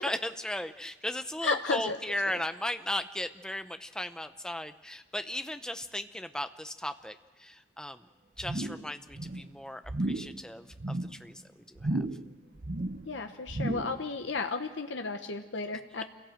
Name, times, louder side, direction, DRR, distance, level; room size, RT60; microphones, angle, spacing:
voice 1, 0.0-8.1 8.4-9.8 10.1-11.4 11.7-12.0, left 1 dB, 5° left, 9 dB, 0.7 m, -36 dB
voice 2, 1.4-2.0 2.2-2.3 13.1-16.0, left 4 dB, 80° left, 5 dB, 1.0 m, -33 dB
sound 1, 8.4-8.9 9.1-9.5 9.9-10.4 10.7-11.2 11.8-12.3 12.6-13.1 13.5-14.0 14.4-14.5, right 2 dB, 45° right, 0.8 m, -33 dB
27.0 x 17.0 x 7.7 m, 1.3 s
head